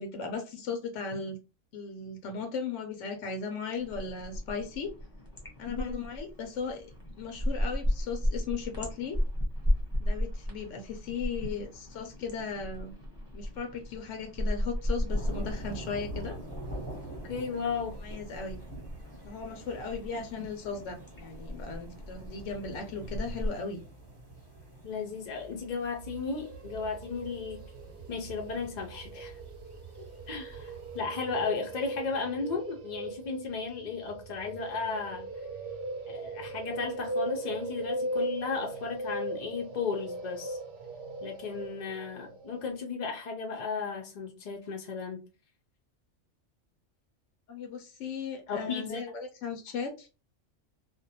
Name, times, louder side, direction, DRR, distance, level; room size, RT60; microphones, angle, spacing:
voice 1, 0.0-1.4 1.7-4.9 5.6-6.9 7.2-9.2 10.0-12.9 13.3-16.4 18.0-18.6 19.2-23.8 47.5-50.1, left 5 dB, 85° left, 0.9 m, -37 dB
sound 1, 3.8-23.5, equal, 20° left, 0.7 m, -35 dB
voice 2, 5.7-6.0 17.3-18.0 24.8-27.6 28.1-29.4 30.3-35.3 36.1-40.6 41.2-45.2 48.5-49.0, left 5 dB, 55° left, 0.5 m, -35 dB
sound 2, 15.1-31.0, right 1 dB, 25° right, 0.8 m, -46 dB
sound 3, 25.8-42.8, right 2 dB, 60° right, 0.7 m, -39 dB
2.5 x 2.1 x 2.7 m
omnidirectional pair, 1.2 m